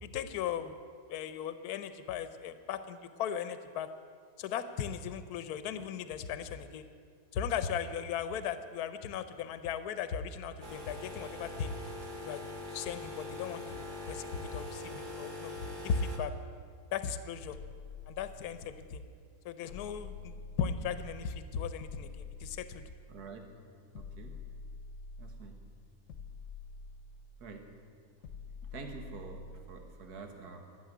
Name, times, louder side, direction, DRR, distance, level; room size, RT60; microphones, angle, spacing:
voice 1, 0.0-0.8 1.1-3.9 4.4-6.8 7.3-11.7 12.2-12.4 12.7-15.5 15.8-16.3 16.9-17.6 18.1-19.0 19.4-22.8, left 7 dB, 75° left, 11 dB, 1.2 m, -37 dB
sound 1, 10.6-16.2, left 2 dB, 30° right, 1.5 m, -43 dB
sound 2, 17.5-18.8 19.7-21.3 21.8-23.2 23.9-25.6 26.1-27.5 28.2-29.8, left 4 dB, 60° left, 1.1 m, -47 dB
voice 2, 23.1-23.5 23.9-24.3 25.2-25.6 27.4-27.7 28.7-30.6, right 4 dB, 75° right, 4 dB, 1.8 m, -47 dB
13.0 x 7.1 x 9.4 m, 2.1 s
omnidirectional pair, 1.7 m